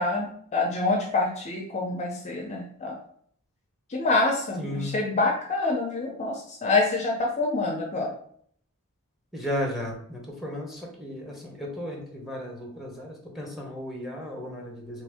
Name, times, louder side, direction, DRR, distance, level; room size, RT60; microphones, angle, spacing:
voice 1, 0.0-3.0 3.9-8.1, left 3 dB, 30° left, 1 dB, 0.5 m, -26 dB
voice 2, 4.6-5.0 9.3-15.0, left 1 dB, ahead, -1 dB, 0.8 m, -34 dB
3.2 x 2.6 x 3.4 m, 0.62 s
head